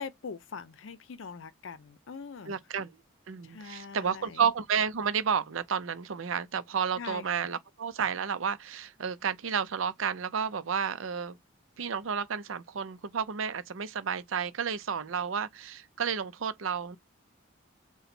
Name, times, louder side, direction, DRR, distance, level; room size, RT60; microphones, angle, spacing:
voice 1, 0.0-2.6 3.4-4.4 7.0-7.3, left 5 dB, 70° left, 0.5 m, -42 dB
voice 2, 2.5-2.9 3.3-11.4 11.8-17.0, right 7 dB, 80° right, 0.6 m, -31 dB
3.9 x 2.2 x 4.3 m
head